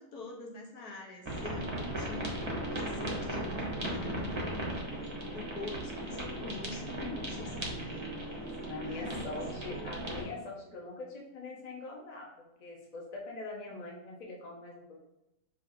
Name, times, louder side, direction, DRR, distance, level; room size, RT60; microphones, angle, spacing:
voice 1, 0.0-8.5 8.8-9.3, left 3 dB, 85° left, -1 dB, 1.4 m, -45 dB
sound 1, 1.2-10.2, right 1 dB, 25° right, 0.7 m, -37 dB
voice 2, 8.4-12.3 12.6-15.0, left 2 dB, 35° left, -2 dB, 0.8 m, -43 dB
5.7 x 2.8 x 2.7 m, 0.93 s
omnidirectional pair, 1.6 m